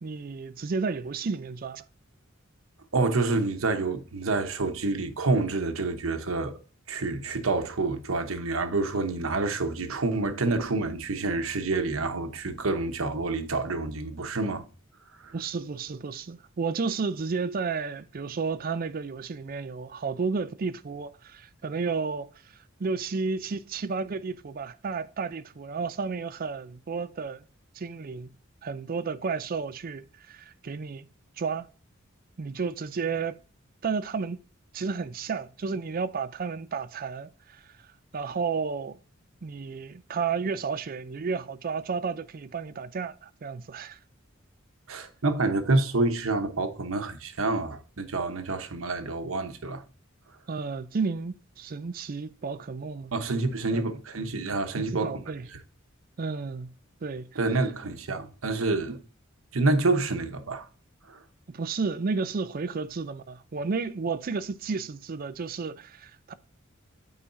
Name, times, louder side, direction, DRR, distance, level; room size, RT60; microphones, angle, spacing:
voice 1, 0.0-1.8 15.3-22.3 22.8-27.4 27.8-28.3 28.6-31.1 31.4-31.7 32.4-33.4 33.8-34.4 34.7-37.6 38.1-39.0 39.4-44.0 50.5-53.1 53.7-54.0 54.8-55.5 56.2-56.7 57.0-57.4 58.9-59.0 61.5-66.3, right 5 dB, 45° right, 0.4 m, -32 dB
voice 2, 2.9-6.6 6.9-14.6 15.2-15.3 44.9-49.8 53.1-55.2 55.5-55.6 57.3-59.0 59.5-60.7 61.1-61.2, right 3 dB, 85° right, 1.0 m, -28 dB
8.6 x 4.9 x 2.6 m
head